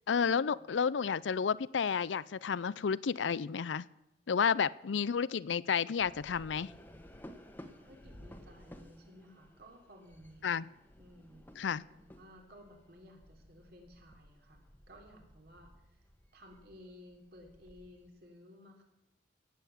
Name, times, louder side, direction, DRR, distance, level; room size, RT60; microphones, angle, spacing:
voice 1, 0.1-3.9 4.3-6.7 10.4-10.7 11.6-11.8, left 6 dB, 85° left, 20 dB, 0.5 m, -31 dB
sound 1, 6.0-18.1, equal, 10° left, 1.3 m, -56 dB
voice 2, 7.7-10.7 11.0-16.0 16.3-18.8, equal, 60° right, 3 dB, 3.5 m, -56 dB
17.5 x 7.9 x 8.4 m, 0.90 s
head